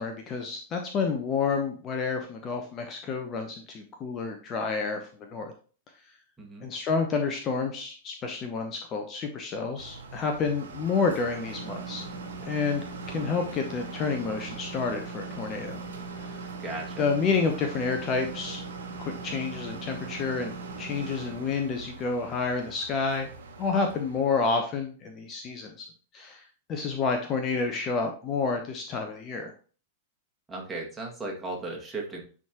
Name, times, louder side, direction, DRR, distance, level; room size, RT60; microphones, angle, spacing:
voice 1, 0.0-5.5 6.6-12.0 12.4-15.8 17.0-18.6 19.0-23.3 23.6-25.9 26.1-26.4 26.7-29.5, left 4 dB, 30° left, 5 dB, 0.9 m, -29 dB
voice 2, 6.4-6.7 16.6-17.0 30.5-32.2, right 2 dB, 10° right, -2 dB, 2.0 m, -36 dB
sound 1, 9.8-24.4, right 4 dB, 65° right, 1.4 m, -40 dB
10.5 x 3.7 x 2.9 m, 0.39 s
figure-of-eight pair, 95°, 0 cm